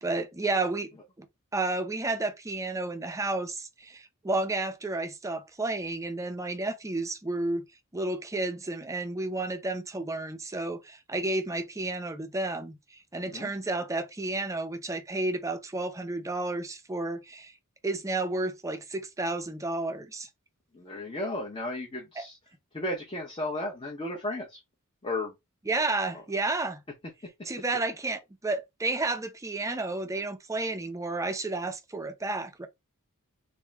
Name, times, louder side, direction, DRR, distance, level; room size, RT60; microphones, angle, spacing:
voice 1, 0.0-0.9 1.2-1.3 1.5-7.6 7.9-17.5 17.8-20.3 22.2-22.3 25.7-26.8 27.5-32.7, right 2 dB, 15° right, 0.5 m, -31 dB
voice 2, 13.2-13.5 20.7-22.4 22.7-24.6 25.0-25.3 26.1-26.2, left 1 dB, 25° left, 0.7 m, -34 dB
3.4 x 2.6 x 3.1 m
head